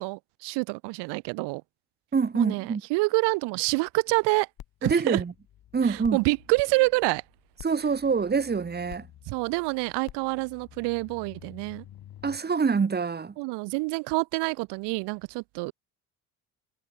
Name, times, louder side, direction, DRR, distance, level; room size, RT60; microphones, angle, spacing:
voice 1, 0.0-1.6 2.3-4.5 4.8-5.2 5.8-7.2 9.3-11.8 13.4-15.7, right 26 dB, 75° right, 1.2 m, -27 dB
voice 2, 2.1-2.8 4.8-5.3 5.7-6.2 7.6-9.1 12.2-13.3, right 5 dB, 25° right, 1.3 m, -25 dB
sound 1, 4.6-12.4, left 12 dB, 60° left, 4.3 m, -49 dB
supercardioid pair, 75°, 41 cm